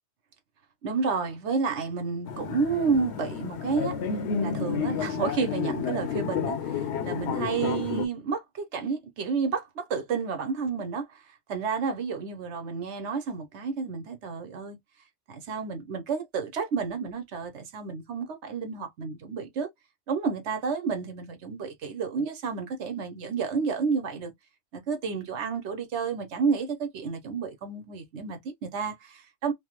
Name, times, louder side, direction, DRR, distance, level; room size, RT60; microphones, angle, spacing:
voice 1, 0.8-4.0 4.4-11.2 11.5-14.8 15.3-19.7 20.1-24.3 24.7-29.5, right 5 dB, 75° right, 1.1 m, -30 dB
sound 1, 2.3-8.1, left 6 dB, 70° left, 0.9 m, -31 dB
3.1 x 2.0 x 3.0 m
omnidirectional pair, 1.2 m